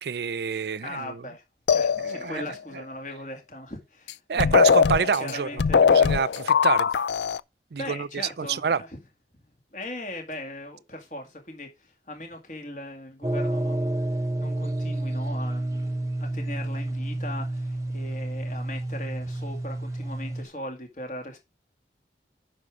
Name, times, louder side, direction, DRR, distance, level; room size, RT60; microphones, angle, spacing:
voice 1, 0.0-1.2 2.0-2.4 4.3-6.9 7.7-8.1 8.4-8.8, right 6 dB, 70° right, 0.5 m, -27 dB
voice 2, 0.8-1.4 1.7-4.6 5.0-5.8 7.8-9.0 9.7-21.4, left 1 dB, 45° left, 2.1 m, -39 dB
sound 1, 1.7-2.5 4.1-4.2 4.4-7.4, left 6 dB, 80° left, 0.4 m, -21 dB
sound 2, 13.2-20.4, right 1 dB, 20° right, 1.1 m, -30 dB
11.5 x 5.0 x 4.8 m
head